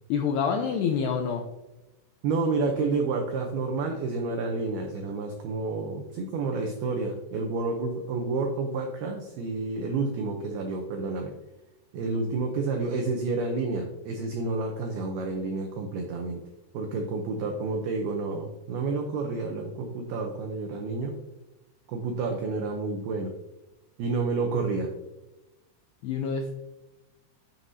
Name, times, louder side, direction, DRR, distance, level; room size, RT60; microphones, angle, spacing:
voice 1, 0.1-1.5 26.0-26.5, left 6 dB, 85° left, 4 dB, 2.3 m, -27 dB
voice 2, 2.2-11.3 11.9-16.4 16.7-21.2 21.9-23.3 24.0-24.9, right 3 dB, 85° right, 3 dB, 2.2 m, -29 dB
11.0 x 6.4 x 2.7 m, 1.0 s
omnidirectional pair, 5.5 m